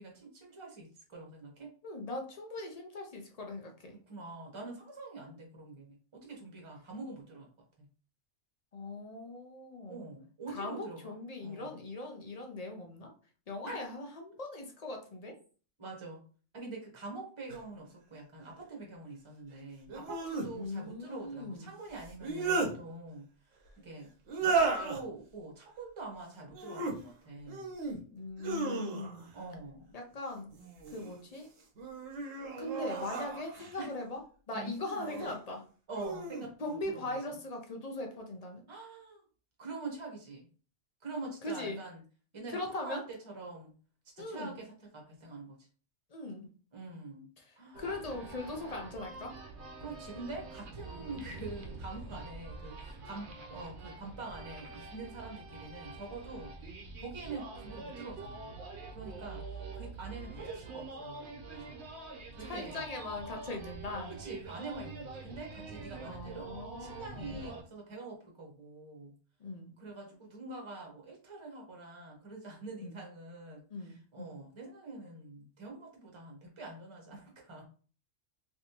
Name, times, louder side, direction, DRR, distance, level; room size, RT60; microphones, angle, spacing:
voice 1, 0.0-1.7 4.1-7.5 7.8-7.9 9.9-11.7 13.6-13.8 15.8-16.2 16.5-23.3 23.8-24.1 24.4-27.7 29.3-29.9 33.8-33.9 34.5-34.7 35.9-37.2 38.7-39.2 39.6-40.5 41.0-42.0 42.3-43.7 44.2-45.6 46.7-47.3 47.6-47.8 49.8-56.5 57.0-58.6 58.9-59.4 59.7-61.9 62.3-62.9 64.2-66.5 66.8-69.1 69.8-77.7, right 3 dB, 25° right, 0 dB, 0.9 m, -45 dB
voice 2, 1.8-4.0 8.7-10.1 10.5-13.1 13.5-15.4 20.5-21.7 28.1-29.3 29.9-30.5 30.9-31.5 32.6-34.2 34.5-35.6 36.6-38.6 41.4-41.8 42.5-43.0 44.2-44.6 46.1-46.5 47.4-49.3 62.4-64.1 66.0-67.5 69.4-69.8 72.8-73.0 73.7-74.4, left 2 dB, 45° left, 2 dB, 0.5 m, -40 dB
sound 1, 17.5-17.6 19.9-20.5 22.0-22.7 24.3-25.0 26.5-27.0 27.5-28.0 28.4-29.3 30.5-31.1 31.8-33.8 34.9-35.3 35.9-36.5, right 4 dB, 80° right, 1.2 m, -34 dB
sound 2, 47.7-67.6, right 3 dB, 65° right, 0.9 m, -45 dB
3.3 x 2.7 x 2.8 m, 0.39 s
omnidirectional pair, 1.3 m